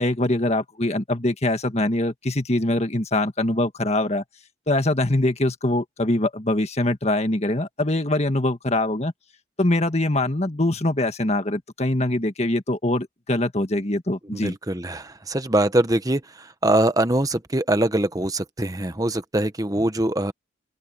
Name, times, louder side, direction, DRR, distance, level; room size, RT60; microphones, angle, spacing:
voice 1, 0.0-4.2 4.7-9.1 9.6-14.5, left 1 dB, 35° left, 1.7 m, -23 dB
voice 2, 14.2-20.3, right 1 dB, 20° right, 1.0 m, -23 dB
open air
head